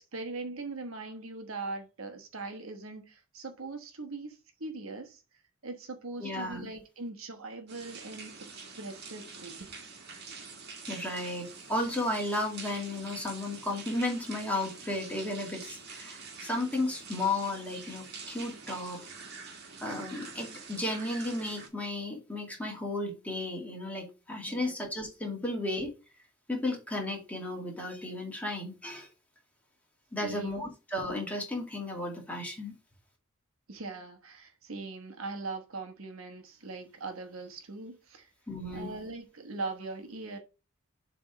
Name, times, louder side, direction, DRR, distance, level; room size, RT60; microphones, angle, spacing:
voice 1, 0.0-5.2 5.6-9.7 24.5-24.8 30.2-30.6 33.7-38.3 38.7-40.4, right 3 dB, 70° right, 1.2 m, -41 dB
voice 2, 6.2-6.7 10.9-19.0 19.8-25.9 26.5-29.1 30.1-32.7 38.5-38.9, left 2 dB, 5° left, 2.2 m, -34 dB
sound 1, 7.7-21.7, right 4 dB, 50° right, 1.7 m, -46 dB
7.3 x 3.5 x 4.8 m
head